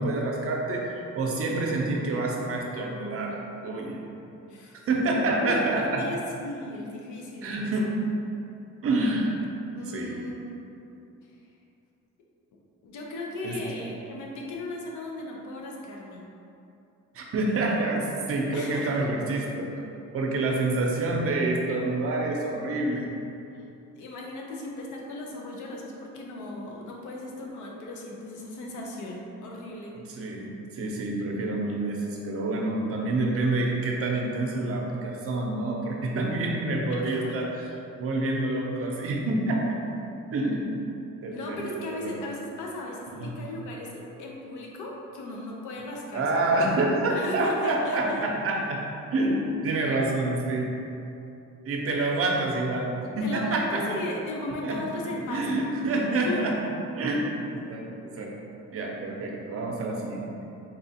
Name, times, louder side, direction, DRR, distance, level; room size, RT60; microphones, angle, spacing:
voice 1, 0.0-3.4 3.6-4.0 4.9-6.0 7.4-7.9 8.8-9.4 9.9-10.2 13.4-13.6 17.1-19.7 20.1-23.1 30.1-37.7 38.0-39.8 40.3-40.8 41.2-42.1 43.1-43.3 46.1-48.8 49.1-50.7 51.7-53.8 54.6-54.8 55.3-56.5 56.9-58.3 58.7-60.3, right 2 dB, 50° right, 0 dB, 0.6 m, -27 dB
voice 2, 4.5-4.8 5.4-7.7 9.7-10.6 12.8-16.3 18.5-19.1 24.0-30.0 37.0-37.3 41.3-46.6 47.1-48.2 53.2-55.6 56.2-56.5, left 2 dB, 80° left, -1 dB, 0.6 m, -36 dB
4.1 x 2.4 x 2.7 m, 2.8 s
cardioid pair, 90°, 30 cm